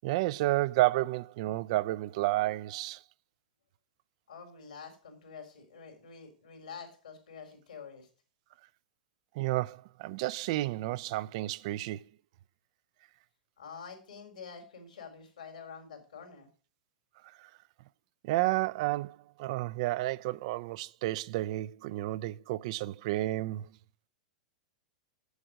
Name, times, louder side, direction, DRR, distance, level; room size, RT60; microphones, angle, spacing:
voice 1, 0.0-3.0 9.4-12.0 17.4-17.5 18.2-23.7, right 17 dB, 55° right, 0.4 m, -31 dB
voice 2, 4.3-8.1 13.6-16.5, left 6 dB, 75° left, 3.9 m, -47 dB
8.0 x 7.8 x 6.2 m
figure-of-eight pair, 100°, 4 cm